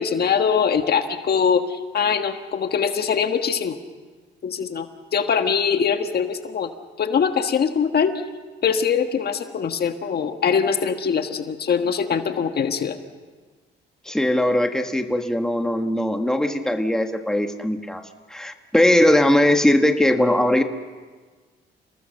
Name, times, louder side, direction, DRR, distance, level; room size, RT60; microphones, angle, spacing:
voice 1, 0.0-3.8 4.4-4.9 5.1-6.7 7.0-8.1 8.6-13.0, left 6 dB, 55° left, 7 dB, 1.6 m, -22 dB
voice 2, 14.0-18.0 18.3-20.6, left 1 dB, 5° left, 5 dB, 1.6 m, -20 dB
28.5 x 19.0 x 6.7 m, 1.4 s
cardioid pair, 90°, 20 cm